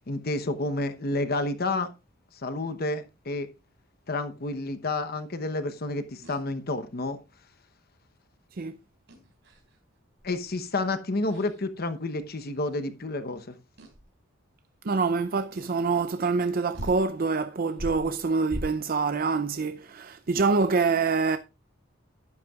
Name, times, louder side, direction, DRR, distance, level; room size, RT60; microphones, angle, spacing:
voice 1, 0.1-1.9 2.4-3.5 4.1-7.2 10.2-13.6, left 2 dB, 50° left, 1.0 m, -30 dB
sound 1, 6.2-6.4 9.1-9.8 10.2-10.5 11.3-11.6 12.7-12.8 13.8-14.1 15.5-15.8 16.4-16.5 16.7-17.1 17.7-19.0, equal, 65° right, 3.9 m, -39 dB
voice 2, 14.8-21.4, right 4 dB, 45° right, 0.5 m, -26 dB
12.0 x 10.5 x 2.4 m
head